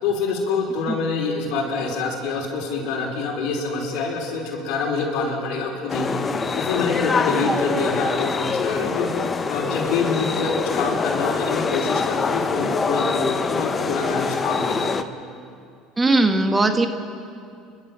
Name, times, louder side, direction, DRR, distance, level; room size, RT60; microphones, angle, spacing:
voice 1, 0.0-6.0 6.5-9.1 9.5-14.9, left 4 dB, 70° left, 0 dB, 5.2 m, -26 dB
sound 1, 5.9-15.0, left 4 dB, 30° left, 1.2 m, -24 dB
voice 2, 16.0-16.9, right 2 dB, 20° right, 6 dB, 1.8 m, -18 dB
30.0 x 12.5 x 7.6 m, 2.4 s
supercardioid pair, 85°, 0 cm